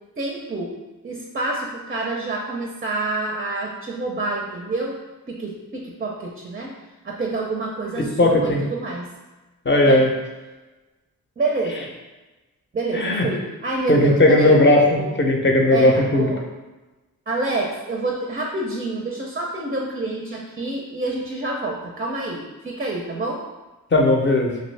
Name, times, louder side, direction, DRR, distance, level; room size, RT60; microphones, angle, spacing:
voice 1, 0.2-0.7 1.0-5.0 5.3-6.7 7.0-9.1 9.8-10.0 11.4-11.9 12.7-15.2 15.7-16.4 17.3-23.4, right 2 dB, 25° right, -1 dB, 0.5 m, -27 dB
voice 2, 8.2-8.6 9.7-10.1 12.9-13.3 13.9-16.3 23.9-24.5, left 1 dB, 30° left, 1 dB, 0.6 m, -17 dB
2.6 x 2.6 x 3.2 m, 1.1 s
cardioid pair, 60°, 35 cm